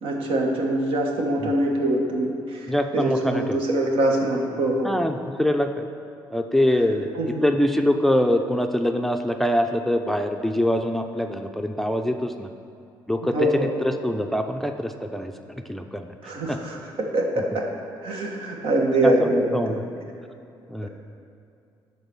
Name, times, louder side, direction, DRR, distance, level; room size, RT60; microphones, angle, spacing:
voice 1, 0.0-4.9 7.2-7.4 13.3-13.7 16.2-17.7 18.0-19.6, right 1 dB, 75° right, 1 dB, 1.3 m, -24 dB
voice 2, 2.7-3.6 4.8-5.9 6.3-7.1 7.4-12.5 13.1-15.3 15.7-16.6 19.0-19.8 20.7-20.9, left 1 dB, ahead, 6 dB, 0.4 m, -24 dB
10.5 x 4.0 x 6.1 m, 2.6 s
cardioid pair, 90°, 9 cm